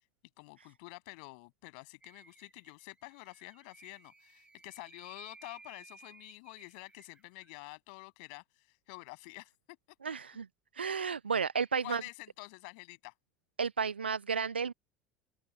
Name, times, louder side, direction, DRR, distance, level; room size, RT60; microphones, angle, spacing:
voice 1, 0.4-9.5 11.8-13.1, left 31 dB, 60° left, 7.6 m, -49 dB
sound 1, 2.0-7.5, right 3 dB, 15° right, 7.0 m, -58 dB
voice 2, 10.0-10.5 10.7-12.0 13.6-14.7, right 6 dB, 80° right, 0.7 m, -32 dB
open air
figure-of-eight pair, 65°, 6 cm